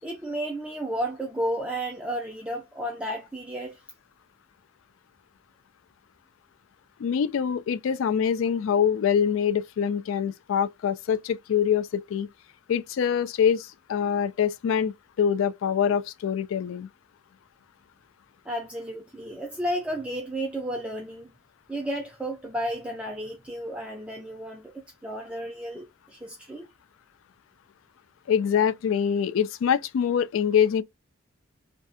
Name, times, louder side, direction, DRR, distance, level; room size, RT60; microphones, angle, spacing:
voice 1, 0.0-3.8 18.5-21.3 21.7-24.7 25.0-26.7, right 1 dB, 5° right, 0.4 m, -32 dB
voice 2, 7.0-12.3 12.7-16.9 28.3-30.8, left 8 dB, 70° left, 0.3 m, -24 dB
2.6 x 2.3 x 2.3 m
head